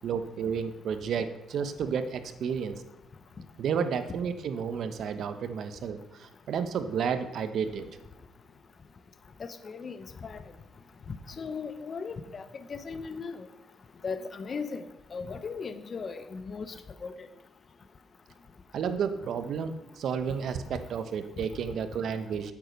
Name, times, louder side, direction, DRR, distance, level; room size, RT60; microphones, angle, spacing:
voice 1, 0.0-2.8 3.6-7.9 18.7-22.5, right 6 dB, 65° right, 9 dB, 1.0 m, -31 dB
voice 2, 9.4-10.4 11.4-13.5 14.0-14.9 15.1-16.7 17.0-17.3, left 5 dB, 40° left, 10 dB, 0.9 m, -37 dB
8.7 x 8.3 x 6.1 m, 0.90 s
cardioid pair, 90°, 0 cm